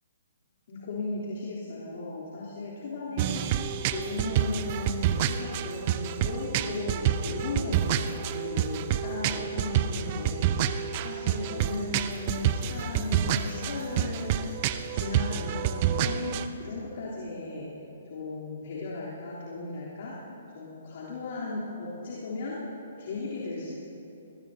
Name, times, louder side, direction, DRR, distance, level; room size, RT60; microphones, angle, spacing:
voice 1, 0.7-10.5 11.0-14.5 14.9-17.7 18.1-20.1 20.5-22.6 23.0-23.8, left 3 dB, 55° left, -9 dB, 3.4 m, -36 dB
sound 1, 3.2-16.5, right 10 dB, 40° right, 0.6 m, -28 dB
22.0 x 18.5 x 2.8 m, 2.9 s
hypercardioid pair, 135°, 0 cm